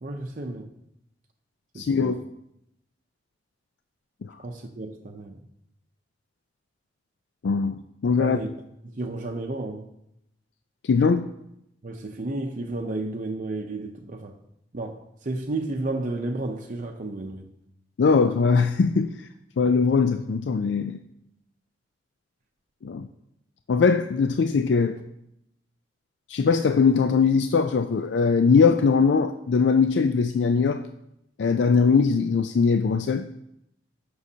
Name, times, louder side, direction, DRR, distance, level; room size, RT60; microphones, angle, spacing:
voice 1, 0.0-0.7 1.7-2.2 4.4-5.3 8.2-8.5 8.9-9.9 11.8-14.3 14.7-17.5, right 2 dB, 45° right, 0.6 m, -32 dB
voice 2, 1.8-2.2 4.3-4.4 7.4-8.4 10.8-11.3 18.0-19.1 19.6-21.0 22.8-23.1 23.7-25.0 26.3-30.8 31.4-33.3, left 5 dB, 80° left, 0.4 m, -21 dB
14.5 x 6.3 x 2.8 m
head